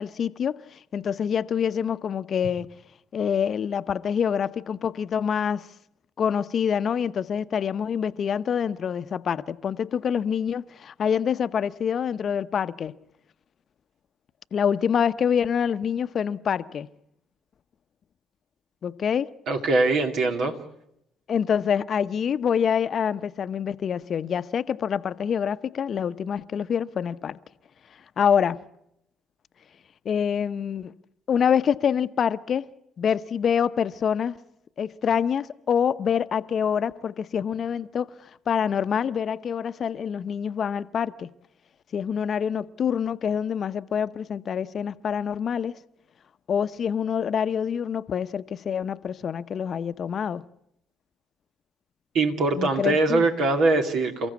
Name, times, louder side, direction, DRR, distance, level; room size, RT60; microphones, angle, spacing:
voice 1, 0.0-2.7 3.1-5.7 6.2-12.9 14.5-16.9 18.8-19.3 21.3-27.4 28.2-28.6 30.0-30.9 31.3-32.7 33.0-34.4 34.8-41.3 41.9-45.8 46.5-50.4 52.5-53.2, left 7 dB, 55° left, 0.8 m, -26 dB
voice 2, 19.5-20.5 52.1-54.3, right 3 dB, 70° right, 2.8 m, -22 dB
29.0 x 15.0 x 8.4 m
hypercardioid pair, 50°, 0 cm